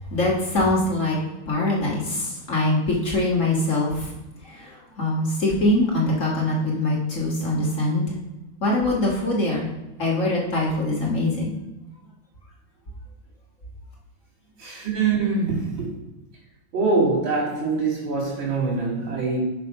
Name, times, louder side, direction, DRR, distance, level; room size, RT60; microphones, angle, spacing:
voice 1, 0.1-1.2 1.5-4.1 4.4-8.2 8.6-9.7 10.0-11.5, left 2 dB, 40° left, -3 dB, 1.8 m, -23 dB
voice 2, 14.6-15.9 16.7-19.4, right 4 dB, 85° right, -3 dB, 3.4 m, -24 dB
5.8 x 5.7 x 5.2 m, 0.99 s
omnidirectional pair, 2.1 m